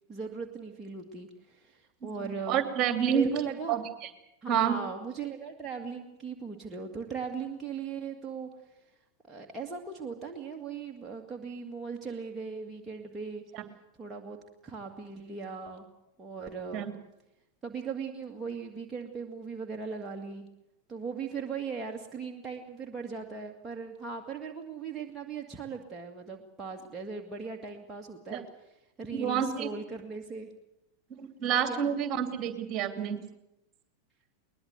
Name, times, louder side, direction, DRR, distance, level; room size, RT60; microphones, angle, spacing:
voice 1, 0.1-2.6 3.1-3.8 4.4-8.5 9.3-13.4 14.0-14.4 14.6-15.9 16.2-16.9 17.6-20.5 20.9-28.4 29.0-30.5 31.7-31.9, right 5 dB, 15° right, 0 dB, 2.1 m, -38 dB
voice 2, 2.0-3.3 3.7-4.1 4.5-4.8 13.5-13.6 16.7-16.9 28.3-28.4 29.1-29.7 31.2-33.2, right 8 dB, 30° right, 8 dB, 2.8 m, -29 dB
21.5 x 20.5 x 8.1 m, 0.90 s
figure-of-eight pair, 90°, 0 cm